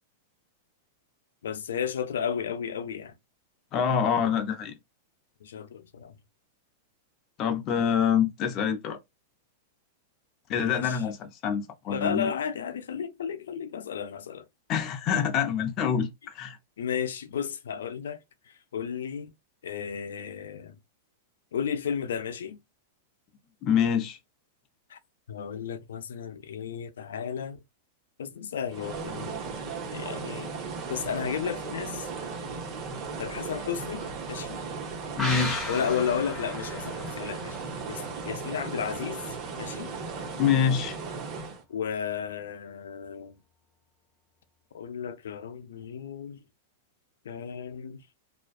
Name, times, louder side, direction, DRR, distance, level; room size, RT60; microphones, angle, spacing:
voice 1, 1.4-3.1 5.4-6.2 10.5-11.0 11.9-14.5 16.8-18.2 18.5-19.3 19.6-20.8 21.5-22.6 24.9-25.0 25.3-27.6 28.2-29.4 29.9-30.5 30.9-32.1 33.2-34.6 35.7-37.6 37.9-39.2 39.6-39.9 41.7-43.3 44.7-46.4 47.3-48.0, left 7 dB, 90° left, 0.4 m, -33 dB
voice 2, 3.7-4.7 7.4-9.0 10.5-12.3 14.7-16.1 16.3-16.6 23.6-24.2 35.2-35.7 40.4-41.0, left 7 dB, 35° left, 0.5 m, -26 dB
sound 1, 28.7-41.6, right 4 dB, 40° right, 0.8 m, -36 dB
sound 2, 35.2-38.6 38.9-39.0, left 2 dB, ahead, 1.0 m, -36 dB
2.4 x 2.2 x 2.4 m
hypercardioid pair, 135°, 0 cm